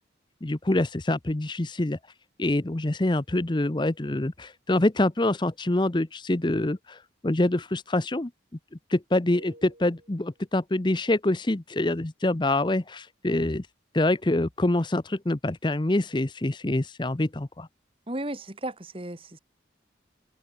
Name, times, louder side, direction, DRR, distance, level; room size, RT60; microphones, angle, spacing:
voice 1, 0.4-2.0 2.4-8.3 8.9-13.7 13.9-17.7, left 1 dB, 25° left, 0.7 m, -25 dB
sound 1, 9.3-10.5, right 1 dB, 50° right, 7.4 m, -51 dB
voice 2, 18.1-19.4, right 1 dB, 30° right, 2.2 m, -34 dB
head